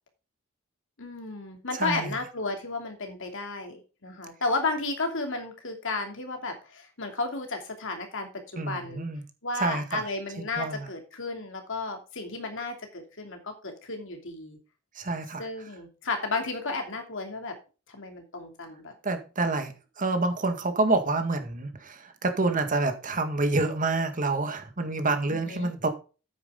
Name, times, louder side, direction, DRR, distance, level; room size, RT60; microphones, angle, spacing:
voice 1, 1.0-9.0 9.4-14.6 15.4-17.5 17.9-18.9 25.3-25.7, left 3 dB, 60° left, 2.8 m, -33 dB
voice 2, 1.7-2.2 8.6-9.2 9.5-10.0 10.6-10.9 15.0-15.5 19.0-25.9, right 3 dB, 40° right, 1.8 m, -28 dB
9.6 x 9.2 x 3.8 m
head